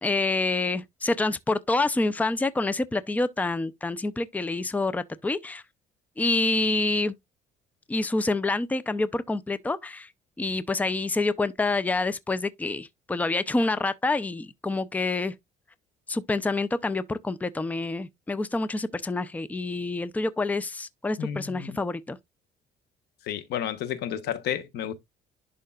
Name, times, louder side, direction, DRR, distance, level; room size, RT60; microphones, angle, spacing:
voice 1, 0.0-5.6 6.2-7.1 7.9-10.1 10.4-15.3 16.1-22.2, left 2 dB, 10° left, 0.5 m, -27 dB
voice 2, 21.2-21.8 23.3-24.9, left 9 dB, 75° left, 1.1 m, -31 dB
11.0 x 3.8 x 2.4 m
cardioid pair, 110°, 17 cm